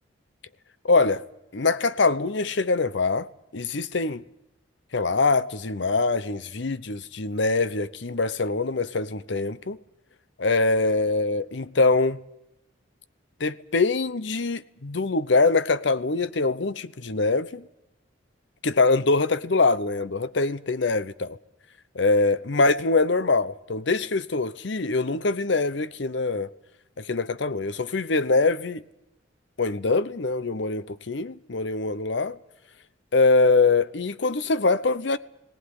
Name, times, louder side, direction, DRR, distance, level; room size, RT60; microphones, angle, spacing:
voice 1, 0.8-1.2 1.5-3.3 3.5-4.2 4.9-9.8 10.4-12.2 13.4-17.6 18.6-21.4 21.9-26.5 27.0-28.8 29.6-32.4 33.1-35.2, left 3 dB, 65° left, 0.8 m, -23 dB
18.5 x 18.5 x 9.8 m
head